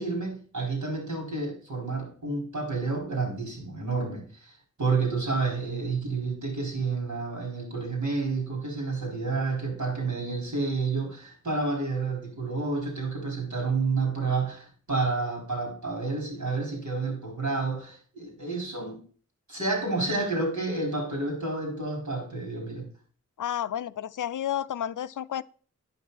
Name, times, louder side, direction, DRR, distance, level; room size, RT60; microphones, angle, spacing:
voice 1, 0.0-19.0 19.5-22.9, right 3 dB, 75° right, 4.7 m, -30 dB
voice 2, 23.4-25.4, left 10 dB, 85° left, 0.5 m, -31 dB
9.3 x 6.0 x 4.1 m
wide cardioid pair, 60°, 30 cm